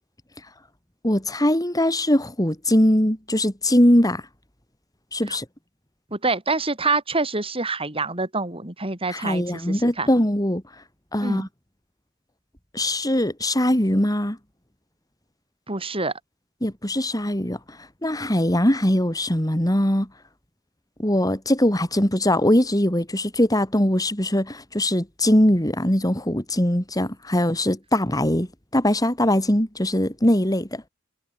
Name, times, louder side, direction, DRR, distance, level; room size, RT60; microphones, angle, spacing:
voice 1, 1.0-4.2 5.1-5.4 9.1-10.6 11.1-11.5 12.7-14.4 16.6-17.6 18.0-20.1 21.0-28.5 28.7-30.8, left 1 dB, 20° left, 4.5 m, -21 dB
voice 2, 6.1-10.1 11.2-11.5 15.7-16.1, right 3 dB, 30° right, 4.3 m, -26 dB
head